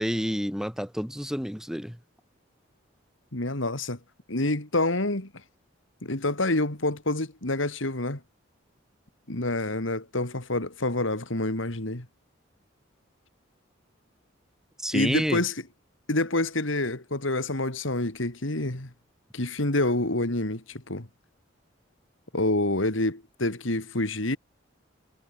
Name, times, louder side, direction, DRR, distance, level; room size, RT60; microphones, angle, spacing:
voice 1, 0.0-2.0 14.8-15.4, equal, 5° right, 7.6 m, -29 dB
voice 2, 3.3-4.0 4.3-5.3 6.0-8.2 9.3-12.1 14.9-15.6 16.1-18.9 19.3-21.1 22.3-24.4, left 2 dB, 80° left, 3.1 m, -27 dB
head